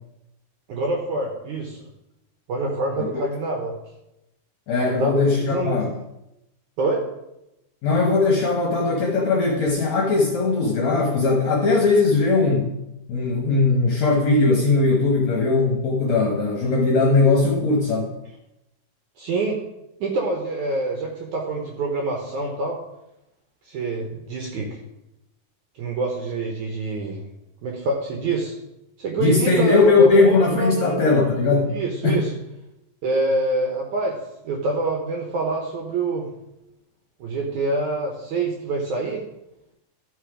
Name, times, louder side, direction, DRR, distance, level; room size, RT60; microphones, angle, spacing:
voice 1, 0.7-1.8 2.5-3.7 4.8-5.8 6.8-7.0 19.2-19.6 20.0-22.8 23.6-24.8 25.8-27.2 27.6-28.6 29.0-31.0 31.7-32.3 33.0-34.2 34.4-36.3 37.2-39.2, right 2 dB, 70° right, 1 dB, 1.9 m, -26 dB
voice 2, 4.7-5.9 7.8-12.7 13.1-18.1 29.2-31.7 32.0-32.3, left 3 dB, 65° left, -1 dB, 1.8 m, -19 dB
13.0 x 5.3 x 5.0 m, 0.90 s
omnidirectional pair, 4.7 m